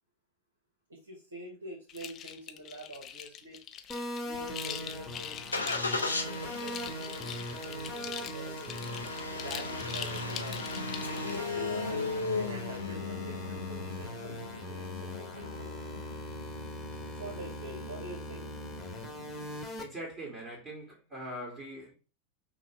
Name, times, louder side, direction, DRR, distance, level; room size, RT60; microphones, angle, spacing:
voice 1, 0.9-3.6 4.2-5.9 6.2-8.9 9.4-10.6 11.0-12.0 12.3-15.7 17.0-18.5, right 1 dB, 70° right, 1.7 m, -46 dB
sound 1, 1.9-11.4, left 9 dB, 30° left, 0.6 m, -43 dB
sound 2, 3.9-19.8, equal, 10° left, 1.4 m, -41 dB
Engine starting, 4.3-19.6, left 3 dB, 80° left, 0.8 m, -38 dB
voice 2, 19.8-21.9, right 1 dB, 25° right, 2.1 m, -42 dB
5.7 x 2.7 x 3.4 m
figure-of-eight pair, 90°, 0 cm